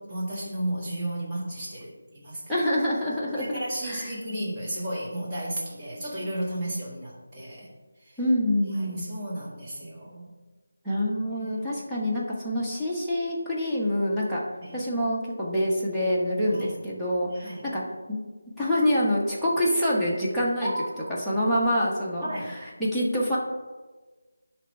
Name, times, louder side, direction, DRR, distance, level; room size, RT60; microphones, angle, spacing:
voice 1, 0.0-2.4 3.3-7.7 8.0-8.1 8.7-10.3 11.3-11.8 14.6-14.8 16.5-16.7 17.3-17.7 20.6-21.0 22.2-22.5, right 1 dB, 20° right, -7 dB, 1.8 m, -33 dB
voice 2, 2.5-4.1 8.2-9.0 10.8-14.4 14.7-17.8 18.1-18.2 18.6-20.7 21.1-23.4, equal, ahead, -10 dB, 1.0 m, -26 dB
10.0 x 3.4 x 5.4 m, 1.3 s
figure-of-eight pair, 170°, 0 cm